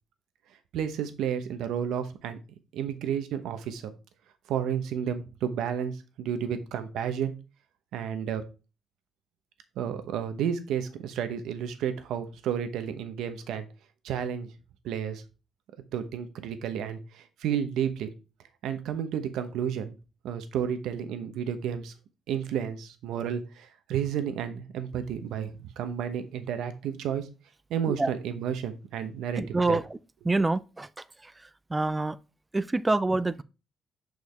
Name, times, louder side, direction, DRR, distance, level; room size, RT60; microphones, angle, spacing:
voice 1, 0.7-2.4 2.7-3.9 4.5-7.3 7.9-8.4 9.8-13.7 14.0-14.5 14.8-15.2 15.9-18.1 18.6-20.0 20.2-21.9 22.3-27.3 27.7-29.8, right 8 dB, 85° right, 0.9 m, -31 dB
voice 2, 29.4-29.8 30.2-30.9 31.7-32.2 32.5-33.4, right 2 dB, 20° right, 0.4 m, -26 dB
6.5 x 4.8 x 3.5 m
cardioid pair, 90°, 0 cm